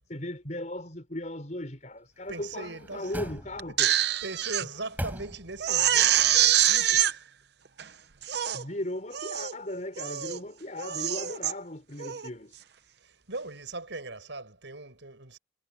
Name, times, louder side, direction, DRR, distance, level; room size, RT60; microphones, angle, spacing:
voice 1, 0.1-4.0 6.9-7.0 8.5-12.6, left 1 dB, 40° left, 5.2 m, -37 dB
sound 1, 2.2-4.0 4.5-5.8 6.2-6.3, equal, 10° right, 7.2 m, -40 dB
voice 2, 2.3-3.2 3.7-7.2 13.0-15.4, right 3 dB, 75° right, 5.4 m, -40 dB
Crying sobbing, 3.6-4.6 5.1-5.2 5.6-7.1 7.8-7.9 8.2-8.6 9.1-9.5 10.0-10.4 10.8-11.5 12.0-12.3, right 11 dB, 60° right, 0.8 m, -25 dB
head